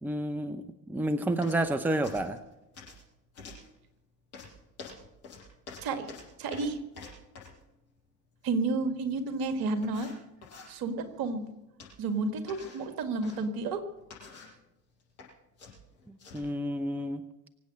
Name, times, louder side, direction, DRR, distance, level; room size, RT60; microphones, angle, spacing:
voice 1, 0.0-2.4 16.1-17.2, right 1 dB, 5° right, 13 dB, 0.8 m, -30 dB
sound 1, 1.4-1.7 2.0-3.0 3.3-3.7 4.3-7.6 9.1-9.2 9.8-10.7 11.8-12.1 12.5-13.4 14.0-14.6 15.0-15.3 15.6-16.5, left 4 dB, 70° left, 6.1 m, -48 dB
voice 2, 6.4-6.8 8.4-10.1 10.7-11.5 12.0-13.8, right 3 dB, 50° right, 9 dB, 1.9 m, -31 dB
24.5 x 8.2 x 6.7 m, 0.94 s
figure-of-eight pair, 60°, 44 cm